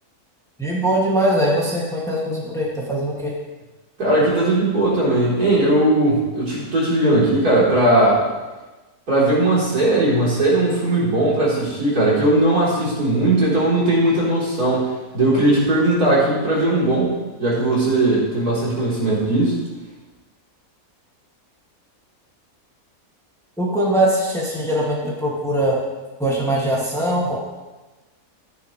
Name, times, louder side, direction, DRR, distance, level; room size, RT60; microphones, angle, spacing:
voice 1, 0.6-3.3 23.6-25.8 26.2-27.4, right 1 dB, ahead, -5 dB, 2.2 m, -21 dB
voice 2, 4.0-8.2 9.1-14.9 15.1-17.1 17.4-19.5, right 1 dB, 75° right, -8 dB, 4.5 m, -18 dB
15.0 x 9.7 x 3.3 m, 1.2 s
omnidirectional pair, 1.6 m